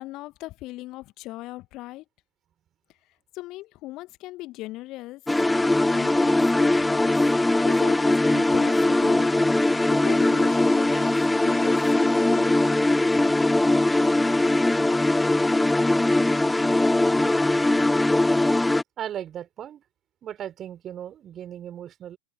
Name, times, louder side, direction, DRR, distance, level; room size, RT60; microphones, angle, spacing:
voice 1, 0.0-2.0 3.3-5.2 5.6-7.2 7.7-9.3 9.9-12.9, left 18 dB, 40° left, 1.9 m, -38 dB
sound 1, 5.3-18.8, left 2 dB, 5° left, 0.3 m, -21 dB
voice 2, 19.0-19.8 20.2-22.2, right 10 dB, 30° right, 3.8 m, -36 dB
figure-of-eight pair, 90°, 0 cm